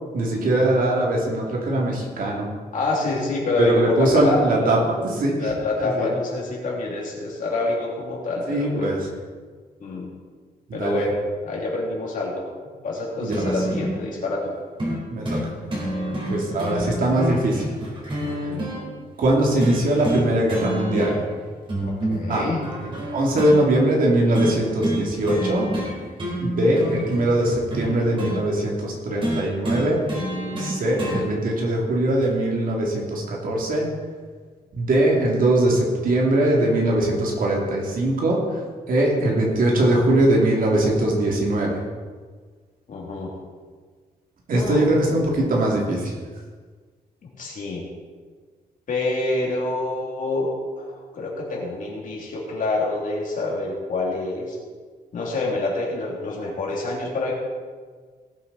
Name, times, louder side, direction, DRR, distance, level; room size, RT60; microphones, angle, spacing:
voice 1, 0.1-2.5 3.6-4.8 5.0-5.5 5.8-6.1 8.5-9.0 10.7-11.0 13.2-13.4 15.1-15.4 16.3-17.7 18.4-18.5 19.2-21.2 22.3-22.5 22.8-25.7 26.4-30.0 30.6-33.9 34.7-38.6 38.9-41.8 44.5-46.1, right 1 dB, 65° right, -2 dB, 2.9 m, -21 dB
voice 2, 2.7-5.0 5.4-8.9 9.8-10.1 10.7-11.1 11.4-12.4 12.8-14.5 18.2-18.8 21.8-22.6 42.9-43.3 44.5-44.8 47.2-47.9 48.9-50.5 50.8-54.6 55.1-57.3, left 2 dB, 55° left, -2 dB, 3.2 m, -27 dB
sound 1, 13.3-13.9 14.8-15.0 15.2-15.4 15.7-18.8 19.6-20.2 20.5-21.3 21.7-23.6 24.3-24.5 24.8-25.0 25.3-25.9 26.2-28.4 29.2-31.2 32.2-32.3, right 1 dB, 35° right, 4.1 m, -28 dB
18.5 x 7.9 x 4.2 m, 1.5 s
wide cardioid pair, 165°, 16 cm